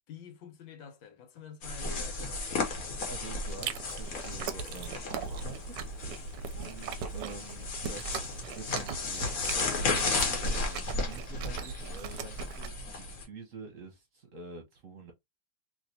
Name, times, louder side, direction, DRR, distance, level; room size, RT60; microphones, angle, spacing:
voice 1, 0.1-2.4, left 7 dB, 85° left, 1.6 m, -47 dB
sound 1, 1.6-13.2, left 3 dB, 55° left, 1.3 m, -34 dB
voice 2, 3.1-5.8 6.5-15.1, right 3 dB, 55° right, 1.1 m, -47 dB
Chewing mastication, 3.4-12.7, right 6 dB, 75° right, 1.1 m, -40 dB
3.2 x 2.9 x 2.6 m
omnidirectional pair, 2.0 m